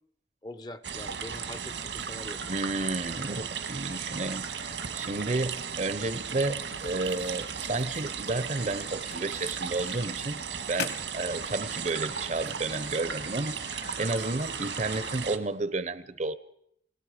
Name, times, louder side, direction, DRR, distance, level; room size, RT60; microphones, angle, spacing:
voice 1, 0.4-2.4, left 1 dB, 20° left, 0.7 m, -43 dB
sound 1, 0.8-15.4, right 7 dB, 80° right, 1.6 m, -36 dB
voice 2, 2.4-10.4 10.7-13.6 14.0-16.4, right 2 dB, 40° right, 0.8 m, -32 dB
sound 2, 6.7-15.5, left 5 dB, 60° left, 2.0 m, -44 dB
29.0 x 18.5 x 5.0 m
head